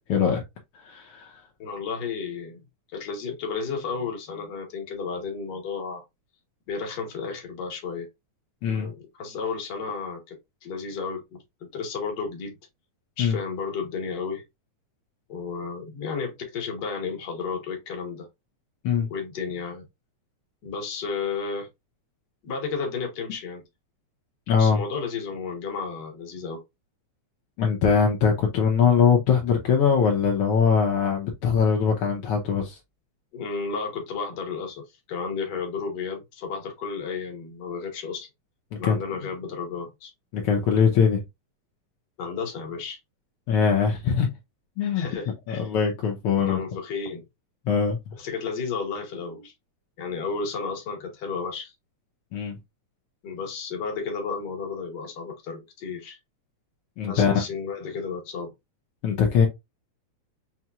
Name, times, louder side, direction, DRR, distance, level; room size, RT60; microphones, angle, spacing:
voice 1, 0.1-0.4 0.8-1.4 8.6-8.9 13.2-13.4 18.8-19.1 24.5-24.8 27.6-32.8 38.7-39.0 40.3-41.2 43.5-44.3 44.8-45.0 45.5-46.6 47.7-48.0 52.3-52.6 57.0-57.4 59.0-59.5, left 6 dB, 80° left, 1.2 m, -22 dB
voice 2, 1.6-2.6 2.9-6.0 6.7-8.1 8.7-11.4 11.7-12.5 13.2-14.4 15.3-18.3 19.1-19.8 20.6-21.7 22.4-23.6 24.6-26.6 33.3-34.8 35.1-38.3 38.8-40.1 42.2-43.0 44.9-45.7 46.4-47.2 48.2-49.5 50.0-51.7 53.2-56.2 57.1-58.5, left 5 dB, 55° left, 1.2 m, -32 dB
5.6 x 2.9 x 2.3 m
omnidirectional pair, 3.5 m